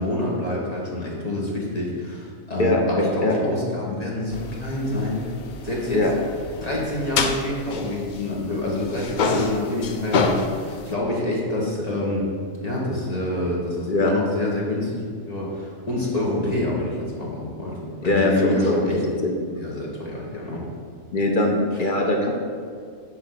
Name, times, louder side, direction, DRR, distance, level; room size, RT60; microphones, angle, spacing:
voice 1, 0.0-5.2 5.6-6.1 6.6-12.2 12.6-15.0 15.3-19.0 19.5-20.6, left 1 dB, 30° left, -5 dB, 1.5 m, -27 dB
voice 2, 2.6-3.3 5.9-6.1 13.9-14.1 18.0-18.8 19.2-19.3 21.1-22.3, left 2 dB, 45° left, 1 dB, 0.8 m, -21 dB
sound 1, 4.3-8.6 8.8-10.9, left 4 dB, 85° left, 0.4 m, -28 dB
8.1 x 4.2 x 5.7 m, 2.1 s
omnidirectional pair, 1.4 m